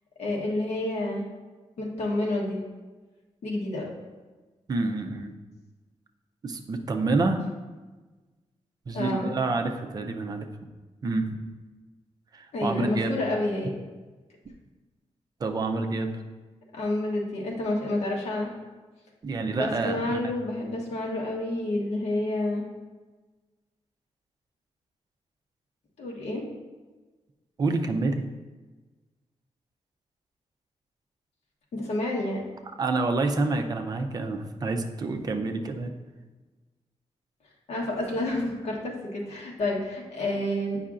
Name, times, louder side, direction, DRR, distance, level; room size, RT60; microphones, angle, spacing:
voice 1, 0.2-1.2 1.8-2.6 3.4-3.9 8.9-9.3 12.5-13.7 16.7-18.5 19.5-22.6 26.0-26.4 31.7-32.5 37.7-40.8, left 1 dB, 70° left, -2 dB, 1.3 m, -29 dB
voice 2, 4.7-5.3 6.4-7.4 8.9-10.5 11.0-11.4 12.3-13.1 15.4-16.1 19.2-20.3 27.6-28.3 32.8-35.9, right 3 dB, 35° right, 5 dB, 0.5 m, -28 dB
8.4 x 5.5 x 2.5 m, 1.3 s
wide cardioid pair, 175°, 11 cm